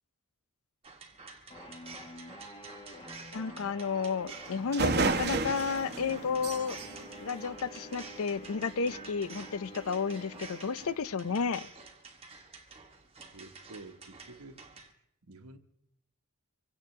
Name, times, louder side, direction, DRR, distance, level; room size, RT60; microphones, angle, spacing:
sound 1, 0.8-14.9, right 4 dB, 25° right, 1.3 m, -49 dB
sound 2, 1.5-11.7, left 1 dB, 25° left, 1.4 m, -49 dB
voice 1, 3.3-6.8 7.2-11.7, left 5 dB, 65° left, 0.6 m, -32 dB
sound 3, 4.3-4.4 4.7-8.2, right 3 dB, 45° right, 1.0 m, -32 dB
voice 2, 13.3-14.8 15.3-15.6, right 2 dB, 75° right, 1.2 m, -50 dB
25.0 x 16.5 x 3.3 m
head